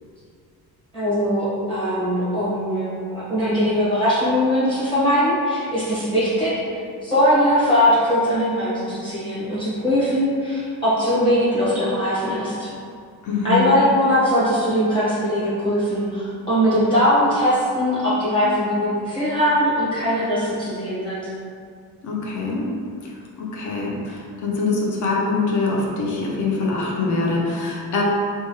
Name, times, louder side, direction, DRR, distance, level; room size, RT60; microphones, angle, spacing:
voice 1, 0.9-6.5 7.0-12.7 13.4-21.3, equal, 15° left, -11 dB, 0.9 m, -20 dB
voice 2, 13.2-13.8 22.0-22.7 23.0-28.0, left 3 dB, 50° left, -2 dB, 0.6 m, -24 dB
3.0 x 2.2 x 2.8 m, 2.3 s
cardioid pair, 145°, 38 cm